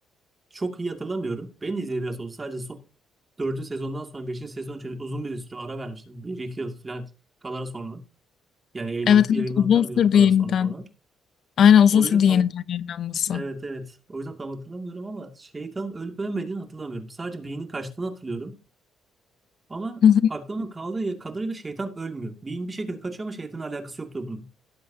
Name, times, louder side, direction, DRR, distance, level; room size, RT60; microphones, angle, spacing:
voice 1, 0.5-2.8 3.4-7.1 7.4-8.0 8.7-10.9 11.9-12.4 13.3-18.6 19.7-20.0 20.3-24.5, right 2 dB, 25° right, 2.4 m, -33 dB
voice 2, 9.1-10.7 11.6-13.4 20.0-20.2, left 8 dB, 65° left, 0.6 m, -18 dB
18.0 x 7.9 x 2.8 m
cardioid pair, 90°, 0 cm